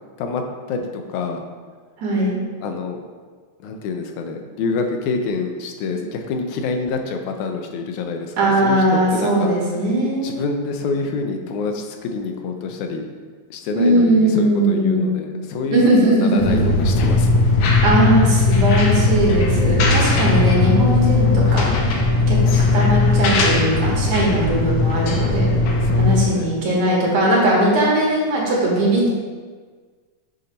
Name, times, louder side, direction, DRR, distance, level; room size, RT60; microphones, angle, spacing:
voice 1, 0.7-1.4 2.6-3.0 3.6-8.8 9.1-9.5 9.8-9.9 10.2-13.1 13.5-17.4 25.8-26.6, left 4 dB, 90° left, 4 dB, 2.1 m, -27 dB
voice 2, 2.0-2.4 8.4-10.6 13.7-15.1 15.7-16.7 17.8-25.5 26.0-29.1, right 1 dB, 75° right, -4 dB, 2.8 m, -19 dB
sound 1, 16.4-26.2, left 3 dB, 70° left, 1.5 m, -17 dB
8.0 x 2.8 x 5.1 m, 1.5 s
omnidirectional pair, 3.3 m